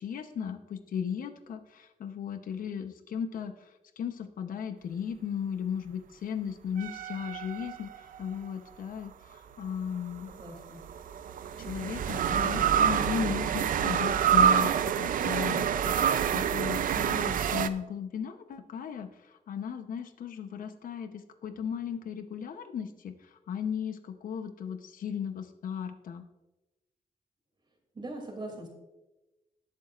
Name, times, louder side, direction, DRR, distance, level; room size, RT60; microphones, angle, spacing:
voice 1, 0.0-10.3 11.6-26.2, left 7 dB, 90° left, 8 dB, 0.8 m, -36 dB
sound 1, 6.8-8.3 10.2-17.7, right 8 dB, 85° right, 0.5 m, -27 dB
voice 2, 10.3-10.8 27.9-28.7, right 1 dB, 35° right, 2 dB, 2.7 m, -41 dB
20.0 x 7.5 x 2.5 m, 1.0 s
wide cardioid pair, 135°, 14 cm